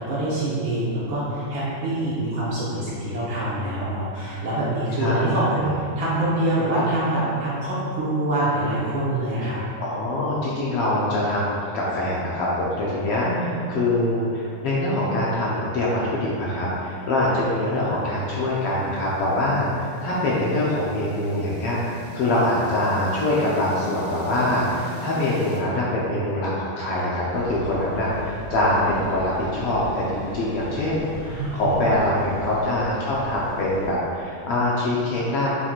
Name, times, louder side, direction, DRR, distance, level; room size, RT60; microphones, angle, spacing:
voice 1, 0.0-9.6 13.2-13.5 31.3-31.7, right 1 dB, 60° right, -9 dB, 1.4 m, -25 dB
voice 2, 5.0-5.4 9.8-21.8 22.1-35.6, left 1 dB, 75° left, -6 dB, 1.3 m, -24 dB
sound 1, 17.5-25.6, left 2 dB, 35° right, 1.1 m, -41 dB
sound 2, 27.3-33.9, right 1 dB, 75° right, 2.7 m, -38 dB
9.4 x 4.5 x 2.4 m, 2.4 s
omnidirectional pair, 3.6 m